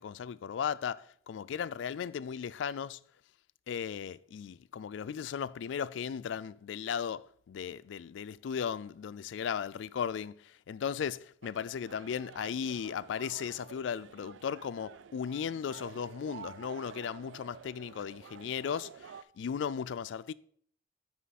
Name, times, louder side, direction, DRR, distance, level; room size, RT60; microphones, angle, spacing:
voice 1, 0.0-3.0 3.7-20.3, left 7 dB, 70° left, 0.3 m, -36 dB
sound 1, 11.4-19.2, right 7 dB, 70° right, 0.4 m, -50 dB
9.4 x 5.9 x 4.1 m
head